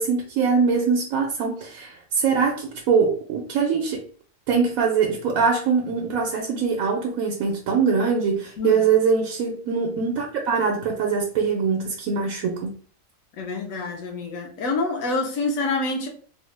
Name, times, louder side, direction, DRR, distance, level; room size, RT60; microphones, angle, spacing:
voice 1, 0.0-4.1 4.5-12.7, right 5 dB, 80° right, 1.1 m, -23 dB
voice 2, 13.4-16.1, left 3 dB, 75° left, 1.2 m, -27 dB
3.9 x 2.1 x 3.2 m
omnidirectional pair, 1.4 m